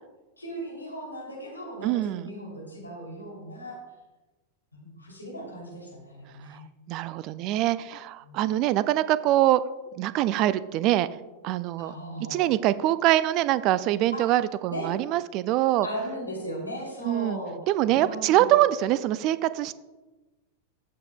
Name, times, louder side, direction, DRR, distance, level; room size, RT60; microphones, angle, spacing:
voice 1, 0.4-3.8 4.7-6.7 8.2-8.3 11.8-12.5 14.1-14.3 14.7-14.9 15.8-17.6 17.9-18.5, equal, 85° left, -2 dB, 2.8 m, -37 dB
voice 2, 1.8-2.3 6.5-6.6 6.9-9.6 10.0-11.1 11.4-11.9 12.3-15.9 17.0-17.4 17.7-19.7, right 14 dB, 40° right, 16 dB, 0.3 m, -24 dB
14.0 x 7.1 x 2.2 m, 1.2 s
figure-of-eight pair, 90°, 0 cm